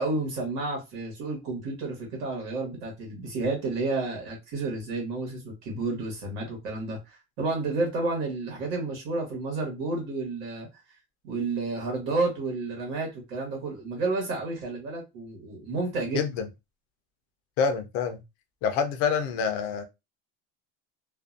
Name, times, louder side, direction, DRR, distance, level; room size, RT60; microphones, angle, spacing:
voice 1, 0.0-10.7 11.2-16.3, right 3 dB, 70° right, 1.2 m, -31 dB
voice 2, 16.1-16.5 17.6-18.2 18.6-19.8, left 6 dB, 40° left, 0.4 m, -27 dB
2.5 x 2.2 x 2.4 m
cardioid pair, 180°, 35 cm